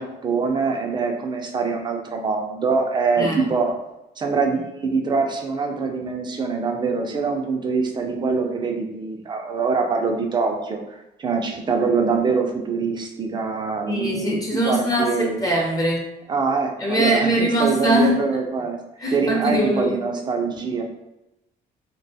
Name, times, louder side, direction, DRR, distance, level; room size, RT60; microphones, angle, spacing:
voice 1, 0.0-3.7 4.2-15.4 16.3-18.8 19.1-20.8, right 4 dB, 25° right, 3 dB, 0.4 m, -24 dB
voice 2, 3.2-3.5 13.9-16.0 16.8-18.2 19.0-20.0, right 1 dB, 20° left, -2 dB, 0.6 m, -22 dB
2.3 x 2.2 x 2.6 m, 0.92 s
cardioid pair, 110°, 17 cm